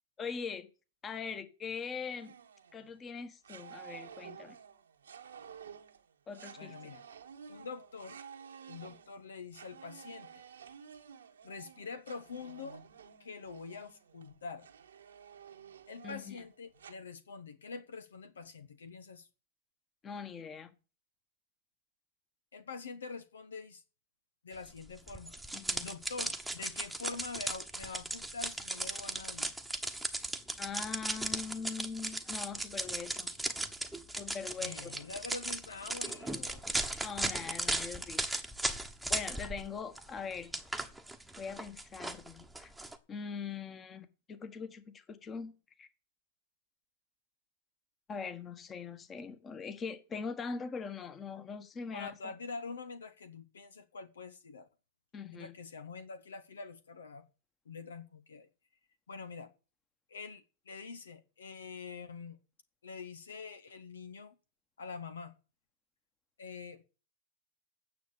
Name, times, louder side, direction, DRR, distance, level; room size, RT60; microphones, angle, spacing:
voice 1, 0.2-0.7 1.0-2.3 2.7-4.6 6.3-6.9 16.0-16.4 20.0-20.7 25.5-25.9 30.6-33.3 34.2-34.9 37.0-38.2 38.7-40.6 41.4-42.7 43.1-45.5 45.8-45.9 48.1-52.3 55.1-55.6, left 5 dB, 25° left, 1.5 m, -42 dB
sound 1, 2.1-3.1 3.4-16.9, right 7 dB, 80° right, 1.3 m, -52 dB
voice 2, 6.6-7.0 7.5-8.2 8.7-10.4 11.4-12.8 13.2-14.7 15.9-19.3 22.5-23.8 24.4-29.5 34.6-36.8 51.9-54.7 55.3-57.2 57.6-58.5 59.1-59.5 60.1-62.4 62.8-64.4 64.8-65.3 66.4-66.8, left 4 dB, 80° left, 1.1 m, -45 dB
sound 2, 25.1-39.7 39.9-43.0, right 2 dB, ahead, 1.2 m, -37 dB
9.4 x 6.9 x 8.3 m
hypercardioid pair, 105°, 0 cm